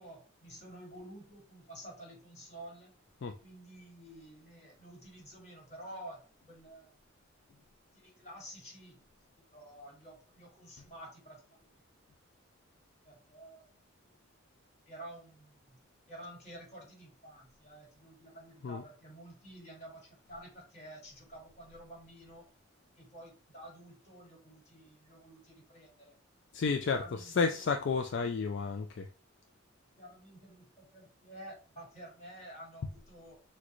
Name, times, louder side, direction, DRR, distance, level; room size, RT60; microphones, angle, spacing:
voice 1, 0.0-2.9 3.2-7.0 7.9-9.0 9.5-11.6 13.0-13.7 14.9-15.8 16.1-22.5 23.0-26.2 26.9-27.7 30.0-33.4, right 1 dB, 35° left, 2.1 m, -51 dB
voice 2, 26.5-29.1 32.8-32.9, left 5 dB, 60° left, 0.4 m, -31 dB
6.1 x 2.2 x 3.0 m
head